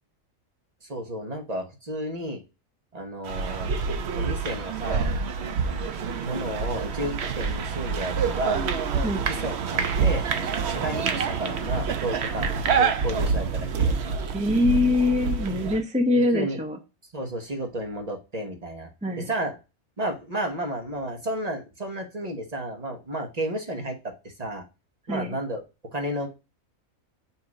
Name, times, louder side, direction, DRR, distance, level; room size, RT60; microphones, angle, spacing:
voice 1, 0.8-2.4 2.9-3.7 4.2-5.1 6.2-8.6 9.3-10.2 10.7-14.0 16.3-16.6 17.1-18.9 19.2-19.5 20.0-24.6 25.1-25.6 25.9-26.3, right 1 dB, 30° right, 3 dB, 1.1 m, -32 dB
sound 1, 3.3-15.8, right 5 dB, 60° right, 0.9 m, -27 dB
voice 2, 14.3-16.8 19.0-19.3 25.1-25.3, left 2 dB, 5° right, 3 dB, 0.6 m, -24 dB
7.0 x 2.8 x 4.7 m, 0.28 s
omnidirectional pair, 1.4 m